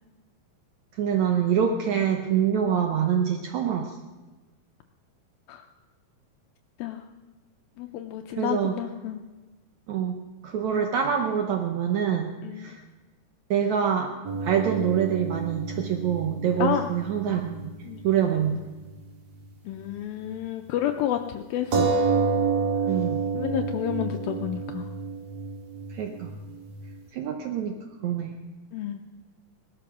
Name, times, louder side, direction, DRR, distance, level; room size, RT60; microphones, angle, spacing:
voice 1, 1.0-4.0 8.4-8.7 9.9-10.1 10.4-12.8 13.5-14.1 14.4-17.7 18.0-18.6 22.9-23.2 25.9-26.3 27.1-27.8 28.0-28.4, right 8 dB, 85° right, 4 dB, 1.6 m, -25 dB
voice 2, 7.8-9.2 12.4-12.8 16.6-16.9 17.9-18.0 19.7-21.9 23.3-24.9 28.7-29.0, left 11 dB, 80° left, 6 dB, 2.3 m, -30 dB
sound 1, 14.2-18.1 18.4-18.5 21.7-26.9, right 4 dB, 45° right, 2.5 m, -29 dB
18.5 x 12.5 x 6.0 m, 1.3 s
omnidirectional pair, 4.5 m